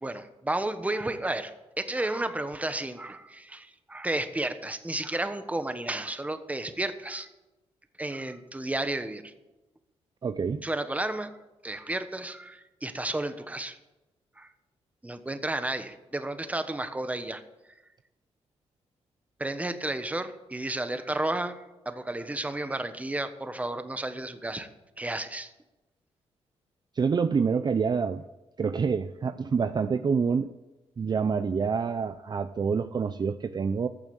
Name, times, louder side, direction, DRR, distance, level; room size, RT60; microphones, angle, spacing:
voice 1, 0.0-7.3 8.0-9.3 10.6-11.3 11.6-13.8 14.4-14.5 15.0-17.4 19.4-24.7 25.0-25.5, right 2 dB, 15° right, 9 dB, 1.2 m, -32 dB
voice 2, 10.2-10.6 26.9-28.2 28.6-30.5 31.0-33.9, right 5 dB, 40° right, 10 dB, 0.6 m, -27 dB
14.5 x 7.2 x 7.9 m, 1.0 s
cardioid pair, 85°, 11 cm